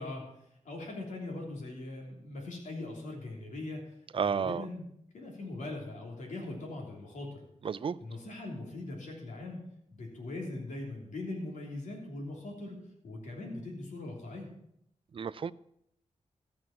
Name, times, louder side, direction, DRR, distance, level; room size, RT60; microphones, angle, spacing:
voice 1, 0.0-4.0 4.2-4.9 5.1-7.4 8.0-9.6 9.9-14.5, left 2 dB, 85° left, 0 dB, 3.2 m, -41 dB
voice 2, 4.1-4.7 7.6-8.0 15.1-15.5, right 6 dB, 45° right, 17 dB, 0.4 m, -31 dB
14.5 x 6.2 x 7.2 m, 0.74 s
wide cardioid pair, 95°, 12 cm